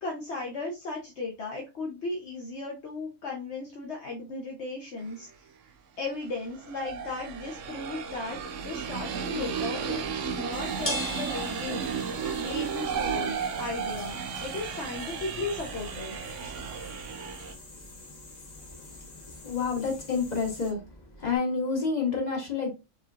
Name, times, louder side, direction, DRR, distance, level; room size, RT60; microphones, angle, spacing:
voice 1, 0.0-5.3 6.0-16.2, left 3 dB, 60° left, 1.2 m, -36 dB
sound 1, 5.1-5.2 6.2-17.5, right 6 dB, 75° right, 1.0 m, -34 dB
sound 2, 9.9-21.4, equal, 15° left, 0.6 m, -43 dB
sound 3, 10.5-20.7, left 3 dB, 85° left, 1.8 m, -48 dB
voice 2, 19.4-20.8 21.2-22.7, left 5 dB, 35° left, 1.7 m, -28 dB
4.8 x 3.9 x 2.5 m
omnidirectional pair, 1.3 m